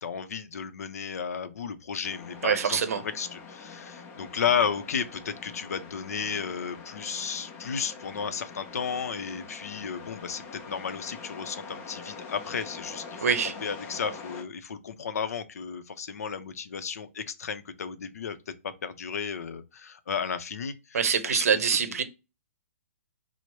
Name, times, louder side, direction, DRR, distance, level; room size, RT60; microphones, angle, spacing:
voice 1, 0.0-13.3 13.6-18.4 18.6-21.0 21.2-21.4 21.9-22.0, left 6 dB, 80° left, 0.5 m, -33 dB
sound 1, 2.0-14.4, left 4 dB, 25° left, 0.6 m, -44 dB
voice 2, 2.4-3.0 13.2-13.5 20.9-22.0, right 6 dB, 70° right, 0.6 m, -24 dB
4.5 x 2.0 x 2.9 m
hypercardioid pair, 175°, 8 cm